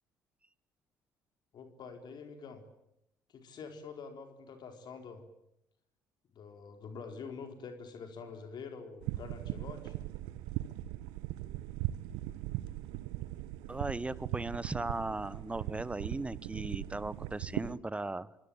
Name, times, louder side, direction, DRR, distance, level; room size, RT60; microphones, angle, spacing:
voice 1, 1.5-2.6 3.3-5.2 6.3-9.9, left 5 dB, 55° left, 6 dB, 4.2 m, -46 dB
sound 1, 9.0-17.7, right 16 dB, 70° right, 1.1 m, -39 dB
voice 2, 13.7-18.3, right 2 dB, 15° right, 19 dB, 1.2 m, -37 dB
27.0 x 24.0 x 8.9 m, 0.83 s
figure-of-eight pair, 50°, 9 cm